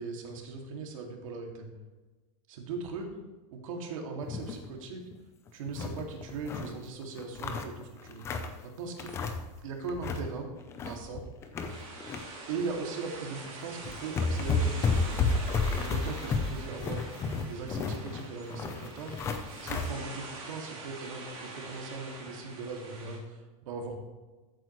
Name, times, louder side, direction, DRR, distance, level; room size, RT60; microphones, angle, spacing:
voice 1, 0.0-1.7 2.5-3.1 3.5-5.0 5.5-9.2 9.6-10.5 10.8-11.2 12.5-15.2 15.7-17.0 17.5-19.1 19.6-24.0, right 4 dB, 70° right, 2 dB, 2.3 m, -39 dB
sound 1, 4.2-4.7 5.1-5.2 5.5-6.7 7.2-8.6 9.0-9.6 9.8-10.3 10.6-12.2 12.6-12.8 13.5-13.6 13.8-19.9, left 4 dB, 15° left, 0.6 m, -32 dB
sound 2, 11.7-23.2, right 3 dB, 40° right, 3.4 m, -44 dB
14.5 x 8.7 x 3.1 m, 1.2 s
supercardioid pair, 175°, 18 cm